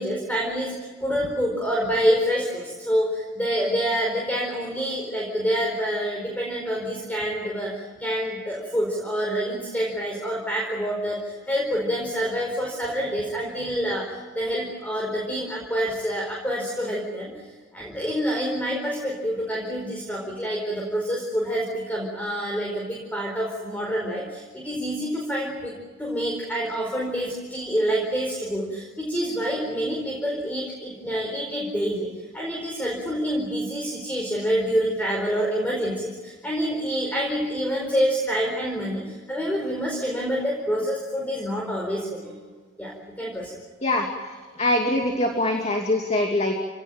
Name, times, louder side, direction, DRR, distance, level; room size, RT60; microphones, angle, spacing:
voice 1, 0.0-7.7 8.0-14.1 14.3-17.4 17.7-42.3 42.8-43.5, equal, 10° left, -1 dB, 4.6 m, -27 dB
voice 2, 44.6-46.6, left 1 dB, 35° left, 2 dB, 2.7 m, -23 dB
28.5 x 18.5 x 9.1 m, 1.4 s
head